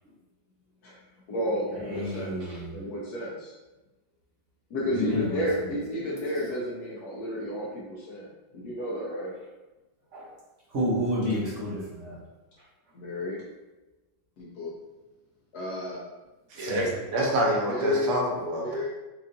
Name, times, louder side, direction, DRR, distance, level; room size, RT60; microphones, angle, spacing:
voice 1, 0.8-2.4 2.7-3.5 4.7-9.3 12.9-13.5 14.4-14.7 15.5-16.0 17.6-18.1 18.6-18.9, left 1 dB, 70° left, -4 dB, 1.0 m, -31 dB
voice 2, 1.8-2.7 4.9-5.4 10.1-10.3 10.7-12.2 16.6-16.8, left 1 dB, 50° right, -7 dB, 0.9 m, -30 dB
voice 3, 16.5-18.6, right 1 dB, 80° right, -1 dB, 1.5 m, -27 dB
4.5 x 2.5 x 2.5 m, 1.1 s
omnidirectional pair, 2.1 m